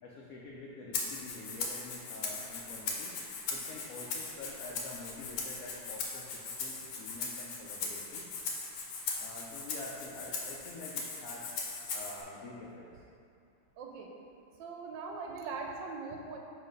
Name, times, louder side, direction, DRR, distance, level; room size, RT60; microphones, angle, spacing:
voice 1, 0.0-3.1 3.5-8.2 9.2-11.5 11.9-12.9, left 2 dB, 90° left, -3 dB, 0.7 m, -47 dB
Rattle (instrument), 0.9-12.2, left 4 dB, 75° left, 1.5 m, -39 dB
voice 2, 13.8-14.1 14.6-16.4, right 4 dB, 75° right, 1 dB, 1.2 m, -41 dB
5.6 x 3.2 x 5.1 m, 2.4 s
omnidirectional pair, 2.2 m